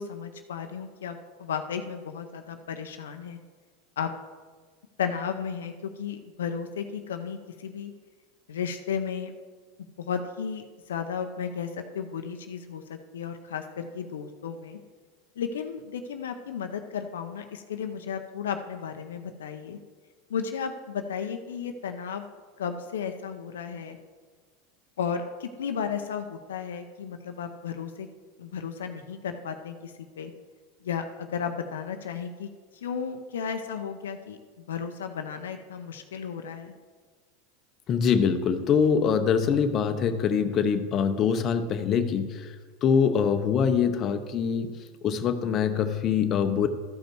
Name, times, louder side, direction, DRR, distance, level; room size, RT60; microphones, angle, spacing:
voice 1, 0.0-3.4 4.0-4.1 5.0-7.9 8.5-9.3 10.0-12.8 13.1-14.8 15.4-19.8 20.3-22.2 22.6-24.0 25.0-28.1 28.4-30.3 30.8-32.5 32.8-34.4 34.7-36.8, left 7 dB, 85° left, 6 dB, 0.6 m, -34 dB
voice 2, 37.9-42.5 42.8-44.7 45.0-46.7, left 7 dB, 40° left, 7 dB, 0.8 m, -24 dB
13.5 x 5.3 x 4.6 m, 1.5 s
hypercardioid pair, 100°, 0 cm